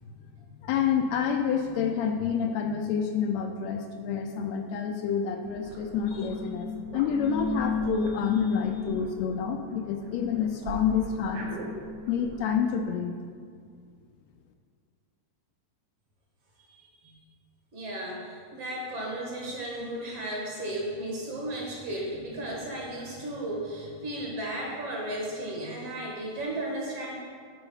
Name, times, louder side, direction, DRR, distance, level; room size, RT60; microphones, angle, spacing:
voice 1, 0.5-11.4 12.1-13.1, left 7 dB, 80° left, 5 dB, 1.7 m, -28 dB
sound 1, 5.4-12.4, left 2 dB, 80° right, 2.5 m, -36 dB
voice 2, 16.7-17.2 17.7-27.2, right 1 dB, 60° right, -3 dB, 2.3 m, -35 dB
8.9 x 4.6 x 5.3 m, 2.1 s
omnidirectional pair, 3.3 m